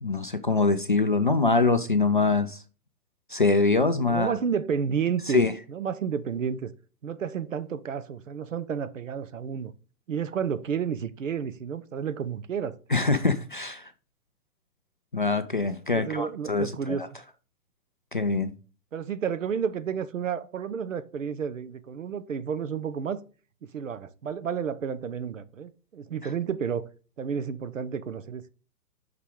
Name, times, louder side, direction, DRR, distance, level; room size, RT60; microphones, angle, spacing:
voice 1, 0.0-2.6 3.3-4.3 5.3-5.5 12.9-13.9 15.1-17.0 18.1-18.5, left 3 dB, 35° left, 0.4 m, -24 dB
voice 2, 4.1-5.4 5.7-6.7 7.0-9.7 10.1-12.8 15.9-17.0 18.9-23.2 23.7-26.9 27.2-28.5, right 7 dB, 55° right, 0.7 m, -31 dB
6.0 x 5.4 x 3.6 m
figure-of-eight pair, 125°, 47 cm